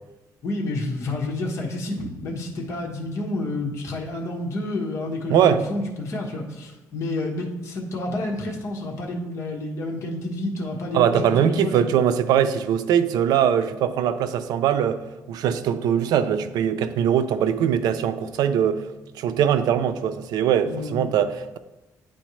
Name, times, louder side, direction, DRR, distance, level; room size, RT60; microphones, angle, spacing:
voice 1, 0.4-11.9 20.6-21.0, left 2 dB, 45° left, 1.2 m, -29 dB
voice 2, 5.3-5.6 10.9-15.0 15.3-18.8 19.2-21.6, right 9 dB, 85° right, 0.4 m, -21 dB
10.5 x 4.2 x 3.1 m
cardioid pair, 155°, 7 cm